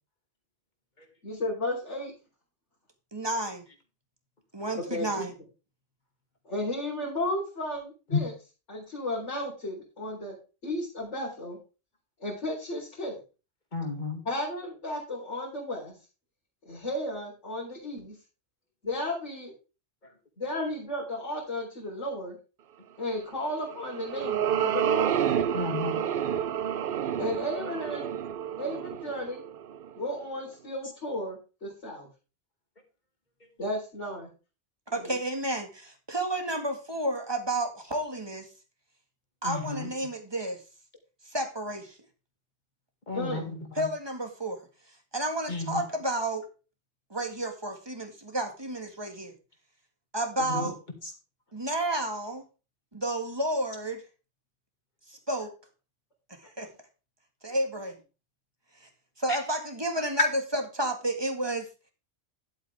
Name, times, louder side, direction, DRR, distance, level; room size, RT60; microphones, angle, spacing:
voice 1, 1.2-2.1 4.7-5.3 6.4-8.3 8.7-10.3 10.6-11.6 12.2-13.2 14.2-16.0 16.6-18.1 18.8-19.5 20.4-22.4 23.0-25.2 27.2-28.1 28.6-29.4 29.9-32.1 33.6-34.3 34.9-35.1 43.1-43.5 50.4-50.7 56.6-56.7, left 1 dB, 90° left, -5 dB, 4.3 m, -34 dB
voice 2, 3.1-3.6 4.5-5.3 34.9-38.5 39.4-40.6 41.3-42.0 43.8-44.6 45.1-46.4 47.1-49.3 50.1-50.8 51.5-52.4 52.9-54.0 55.1-55.5 56.4-56.7 57.4-58.0 58.8-58.9 59.2-61.7, right 1 dB, 20° right, 5 dB, 1.9 m, -31 dB
voice 3, 13.7-14.2 25.5-26.0 39.4-39.9 43.1-43.9 45.5-45.8 50.5-50.7, left 4 dB, 40° left, 4 dB, 2.4 m, -32 dB
sound 1, 23.6-30.1, right 9 dB, 55° right, 0.7 m, -29 dB
11.0 x 8.2 x 3.5 m, 0.32 s
omnidirectional pair, 1.2 m